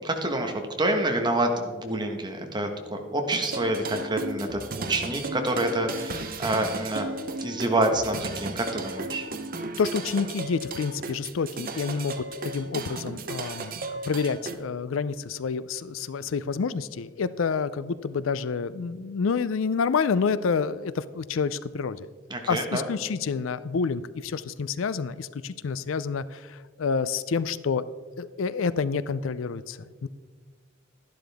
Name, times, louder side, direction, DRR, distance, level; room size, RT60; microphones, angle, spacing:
voice 1, 0.0-4.6 4.9-7.1 7.4-9.2 22.3-22.8, right 1 dB, 25° right, 4 dB, 1.3 m, -27 dB
sound 1, 3.3-14.6, right 3 dB, 50° right, 0.9 m, -35 dB
voice 2, 9.8-22.1 22.5-27.8 28.2-30.1, left 5 dB, 85° left, 16 dB, 0.5 m, -28 dB
12.0 x 11.5 x 3.5 m, 1.5 s
head